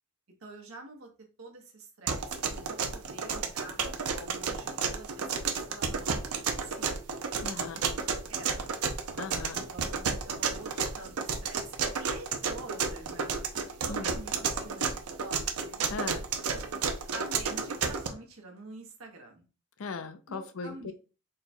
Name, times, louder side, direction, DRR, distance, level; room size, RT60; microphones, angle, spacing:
voice 1, 0.4-1.1 1.4-3.8 4.1-7.0 7.8-8.7 9.4-13.4 13.8-15.8 16.5-16.7 17.1-19.5 20.3-20.9, right 2 dB, 65° right, 1 dB, 1.1 m, -47 dB
sound 1, 2.1-18.1, right 5 dB, 90° right, 0.7 m, -31 dB
voice 2, 7.4-7.8 9.2-9.6 13.9-14.1 15.9-16.3 19.8-20.9, left 4 dB, 65° left, 10 dB, 0.5 m, -38 dB
3.7 x 2.3 x 4.2 m, 0.35 s
head